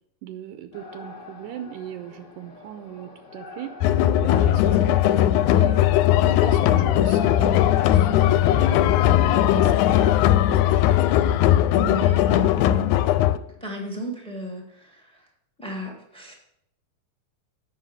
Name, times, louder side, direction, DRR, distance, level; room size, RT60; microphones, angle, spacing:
voice 1, 0.2-3.8 4.2-11.4, right 11 dB, 85° right, 8 dB, 2.1 m, -38 dB
sound 1, 0.7-10.2, left 3 dB, 45° left, 0.9 m, -43 dB
sound 2, 3.8-13.4, left 12 dB, 85° left, 1.9 m, -19 dB
voice 2, 11.7-13.0 13.6-15.2 15.6-16.3, equal, 5° left, 1 dB, 0.5 m, -34 dB
8.3 x 5.7 x 6.7 m, 0.72 s
omnidirectional pair, 3.5 m